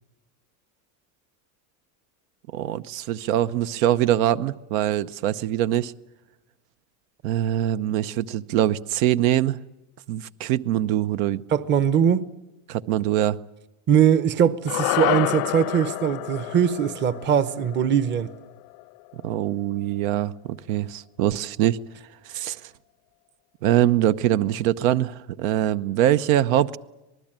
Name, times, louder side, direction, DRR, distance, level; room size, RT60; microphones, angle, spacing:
voice 1, 2.5-5.9 7.2-9.6 10.1-11.4 12.7-13.4 19.1-21.8 22.3-22.6 23.6-26.8, right 12 dB, 75° right, 0.9 m, -23 dB
voice 2, 11.5-12.3 13.9-18.3, right 8 dB, 25° right, 0.8 m, -21 dB
sound 1, 14.7-19.1, left 20 dB, 80° left, 0.8 m, -29 dB
26.0 x 19.5 x 8.9 m
cardioid pair, 160°, 40 cm